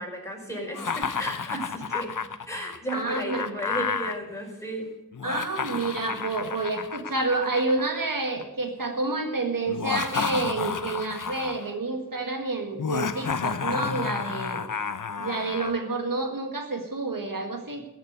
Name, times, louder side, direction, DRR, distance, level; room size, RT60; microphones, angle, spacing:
voice 1, 0.0-2.1 2.4-4.9, right 1 dB, 10° left, -1 dB, 4.9 m, -34 dB
Laughter, 0.7-4.2 5.1-8.4 9.7-11.7 12.8-15.7, left 6 dB, 70° left, 0.8 m, -31 dB
voice 2, 2.9-3.6 5.2-14.6 15.2-17.9, right 3 dB, 80° right, 4 dB, 1.9 m, -29 dB
15.0 x 6.6 x 9.5 m, 0.98 s
wide cardioid pair, 50°, 33 cm